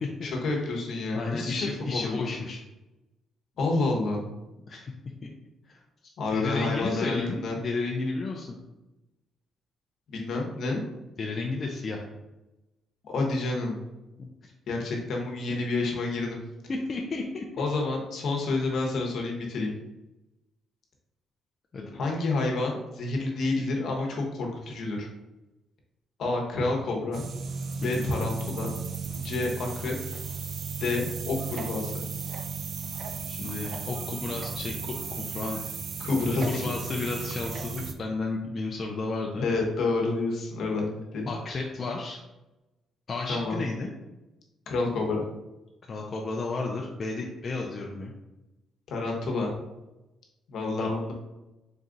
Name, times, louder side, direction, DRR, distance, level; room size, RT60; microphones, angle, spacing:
voice 1, 0.2-2.2 3.6-4.2 6.2-7.6 10.1-10.8 13.0-13.8 14.7-16.4 17.6-19.7 21.9-25.1 26.2-27.2 27.8-28.7 29.2-29.9 30.8-32.0 36.0-36.7 39.4-41.3 43.3-43.6 44.7-45.2 48.9-49.5 50.5-51.1, left 3 dB, 70° left, 0 dB, 1.1 m, -29 dB
voice 2, 1.1-2.6 4.7-4.9 5.7-5.8 6.3-8.6 11.2-12.0 14.2-14.5 16.7-17.7 21.7-22.0 27.8-28.1 33.3-35.7 36.4-39.5 41.3-42.2 43.1-43.9 45.9-48.1 50.8-50.9, left 3 dB, 40° left, -1 dB, 0.6 m, -32 dB
sound 1, 27.1-37.9, right 5 dB, 60° right, 0.4 m, -35 dB
4.1 x 2.4 x 3.9 m, 0.99 s
cardioid pair, 90°, 0 cm